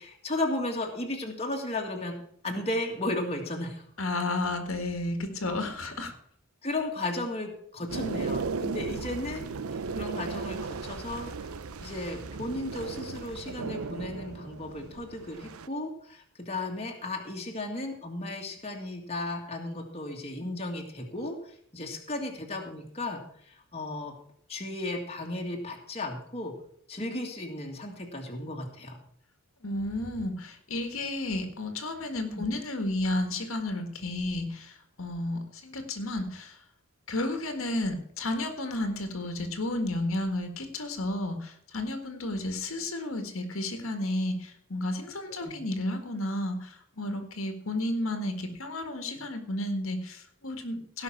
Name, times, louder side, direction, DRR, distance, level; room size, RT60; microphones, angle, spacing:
voice 1, 0.0-3.8 5.5-5.9 6.6-24.1 24.5-26.5 26.9-29.0 32.3-32.5 45.2-45.6, left 2 dB, 30° left, 0 dB, 1.9 m, -35 dB
voice 2, 4.0-6.1 29.6-36.6 37.1-51.0, left 1 dB, 70° left, 6 dB, 1.8 m, -32 dB
sound 1, 7.9-15.7, right 4 dB, 85° right, 0.7 m, -36 dB
17.5 x 5.8 x 5.9 m, 0.66 s
head